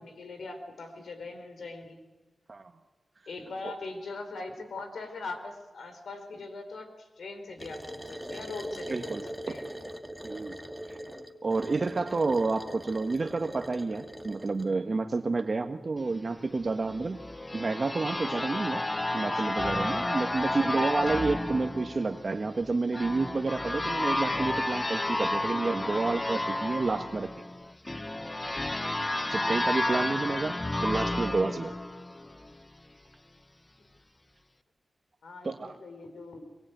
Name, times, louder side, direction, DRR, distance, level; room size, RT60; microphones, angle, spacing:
voice 1, 0.0-2.0 3.3-9.6 10.9-11.2 20.4-20.6 21.5-21.7 35.2-36.5, left 3 dB, 80° left, 7 dB, 4.8 m, -41 dB
sound 1, 7.6-14.7, right 1 dB, ahead, 2.3 m, -41 dB
voice 2, 8.9-9.5 10.2-10.6 10.9-11.0 11.4-17.2 17.5-18.8 19.1-27.3 29.3-31.7 35.4-35.7, right 3 dB, 50° right, 5 dB, 1.5 m, -30 dB
sound 2, 16.9-32.6, left 1 dB, 25° left, 1.1 m, -31 dB
26.0 x 23.0 x 9.3 m, 1.2 s
cardioid pair, 55°, 0 cm